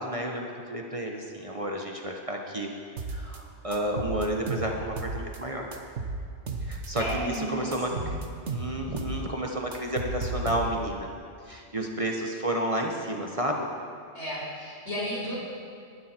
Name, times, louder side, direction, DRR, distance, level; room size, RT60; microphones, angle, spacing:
voice 1, 0.0-2.7 3.1-5.7 6.6-8.2 8.5-11.1 11.4-13.7, right 1 dB, 30° right, 1 dB, 1.3 m, -31 dB
sound 1, 3.0-3.4 3.7-5.4 5.7-7.4 7.7-9.2 9.5-11.0, right 3 dB, 85° right, 1.5 m, -34 dB
voice 2, 7.0-8.1 14.1-15.4, equal, 75° left, -6 dB, 5.3 m, -34 dB
20.0 x 12.0 x 4.5 m, 2.3 s
omnidirectional pair, 1.2 m